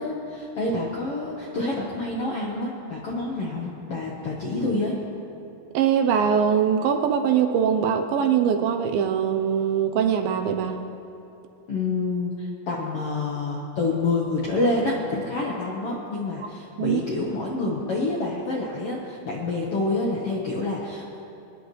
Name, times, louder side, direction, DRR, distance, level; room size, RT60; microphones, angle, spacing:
voice 1, 0.0-5.0 11.7-21.0, left 2 dB, 70° left, -3 dB, 1.4 m, -27 dB
voice 2, 5.7-10.9 16.8-17.0, right 8 dB, 80° right, 5 dB, 2.3 m, -22 dB
23.5 x 10.5 x 3.1 m, 2.8 s
omnidirectional pair, 4.4 m